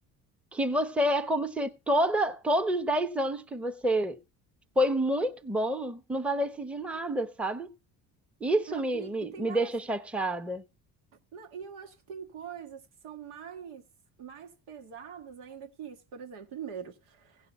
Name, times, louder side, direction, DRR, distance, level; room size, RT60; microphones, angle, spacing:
voice 1, 0.5-4.2 4.8-7.7 8.4-10.6, right 1 dB, 5° right, 0.9 m, -28 dB
voice 2, 8.7-9.7 11.3-13.8 14.2-17.2, right 7 dB, 75° right, 1.6 m, -43 dB
16.5 x 5.6 x 4.2 m
hypercardioid pair, 65°, 47 cm